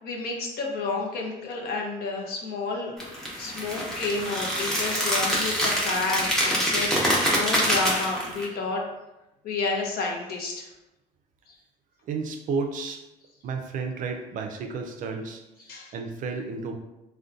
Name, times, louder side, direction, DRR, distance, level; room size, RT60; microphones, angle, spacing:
voice 1, 0.0-3.0 3.4-8.8 9.4-10.7 11.5-11.6 15.6-15.9, left 3 dB, 65° left, 0 dB, 0.6 m, -30 dB
sound 1, 3.0-8.4, equal, 5° left, 0.6 m, -25 dB
voice 2, 12.1-13.0 13.4-15.4 15.9-16.7, right 4 dB, 50° right, 4 dB, 0.4 m, -32 dB
2.6 x 2.1 x 2.4 m, 0.96 s
cardioid pair, 110°, 17 cm